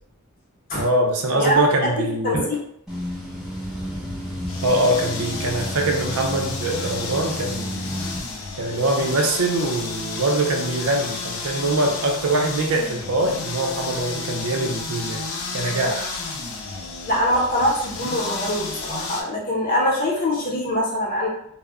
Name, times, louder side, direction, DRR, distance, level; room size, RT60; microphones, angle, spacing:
voice 1, 0.8-2.5 4.6-7.9 8.6-15.2 15.5-16.1, right 2 dB, 80° right, 3 dB, 0.5 m, -23 dB
voice 2, 1.3-2.5 17.1-21.3, equal, 40° left, -3 dB, 0.7 m, -23 dB
sound 1, 2.9-8.2, equal, ahead, 0.6 m, -32 dB
sound 2, 4.5-19.2, left 4 dB, 70° left, 0.4 m, -32 dB
2.1 x 2.0 x 3.5 m, 0.69 s
head